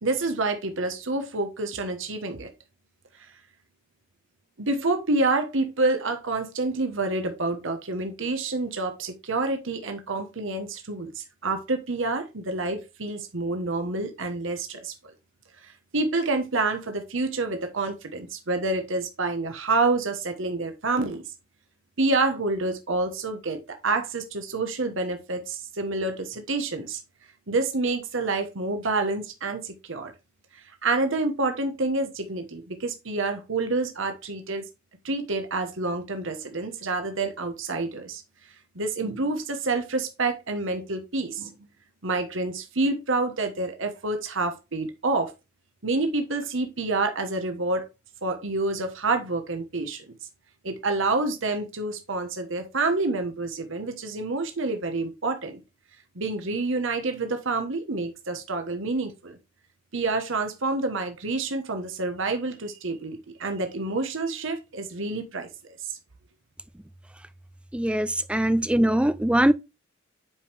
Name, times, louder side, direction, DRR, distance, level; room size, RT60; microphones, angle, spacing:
voice 1, 0.0-2.5 4.6-14.9 15.6-21.2 22.0-27.0 27.5-30.1 30.5-34.7 35.0-38.2 38.7-41.5 42.0-45.3 45.8-47.9 48.2-50.0 50.6-55.6 56.1-59.4 59.9-65.5, right 3 dB, 70° right, 1.2 m, -28 dB
voice 2, 67.7-69.5, right 1 dB, 5° right, 0.5 m, -22 dB
8.6 x 5.0 x 3.4 m
head